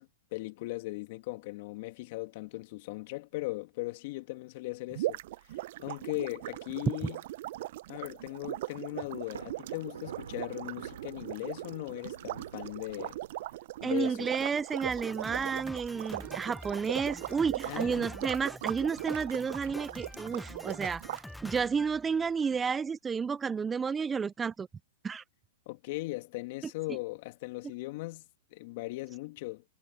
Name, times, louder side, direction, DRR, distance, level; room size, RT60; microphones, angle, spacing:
voice 1, 0.0-5.2 5.8-7.2 7.9-13.2 13.8-14.3 17.6-18.1 25.7-28.2 28.5-29.6, left 21 dB, 55° left, 2.4 m, -38 dB
sound 1, 4.9-21.2, right 16 dB, 60° right, 0.6 m, -39 dB
Thunder, 9.1-13.7, right 8 dB, 90° right, 4.5 m, -48 dB
voice 2, 13.8-21.0 21.4-24.7 25.0-25.2, right 6 dB, 15° right, 0.3 m, -31 dB
Drum kit, 14.8-22.6, left 1 dB, 5° left, 0.9 m, -46 dB
hypercardioid pair, 130°, 0 cm